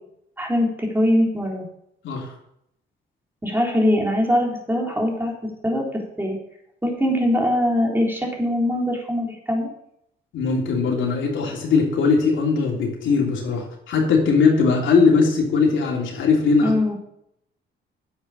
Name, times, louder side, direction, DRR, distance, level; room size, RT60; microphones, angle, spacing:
voice 1, 0.4-1.6 3.4-5.3 5.6-5.9 6.2-6.4 6.8-9.7 16.6-16.9, left 1 dB, 10° right, -1 dB, 3.8 m, -22 dB
voice 2, 10.3-16.7, left 4 dB, 75° left, -1 dB, 3.3 m, -20 dB
9.9 x 7.9 x 7.4 m, 0.77 s
cardioid pair, 90°, 20 cm